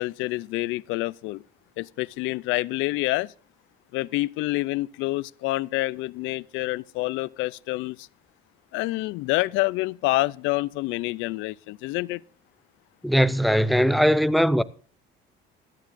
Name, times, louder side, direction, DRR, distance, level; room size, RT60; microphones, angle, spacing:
voice 1, 0.0-1.4 1.8-3.3 3.9-8.0 8.7-12.2, left 20 dB, 75° left, 0.4 m, -27 dB
voice 2, 13.0-14.6, equal, ahead, 0.4 m, -20 dB
16.5 x 12.5 x 2.6 m
cardioid pair, 130°, 21 cm